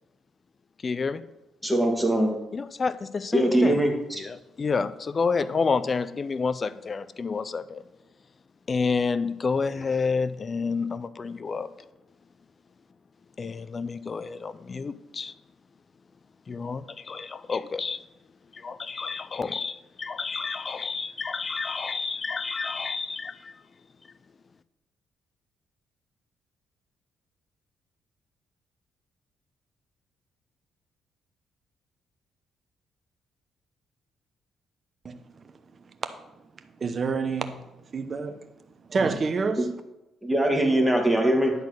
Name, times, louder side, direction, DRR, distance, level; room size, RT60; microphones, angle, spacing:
voice 1, 0.8-1.2 2.5-3.8 4.2-7.8 8.7-11.7 13.4-15.3 16.5-18.0 18.5-23.5, left 4 dB, 35° left, 0.5 m, -29 dB
voice 2, 1.6-2.3 3.3-4.2 39.6-39.7 40.2-41.5, right 1 dB, ahead, 1.8 m, -22 dB
voice 3, 35.0-36.1 36.6-38.5 38.9-39.7, right 4 dB, 40° right, 0.9 m, -29 dB
10.5 x 4.2 x 6.3 m
cardioid pair, 90°, 0 cm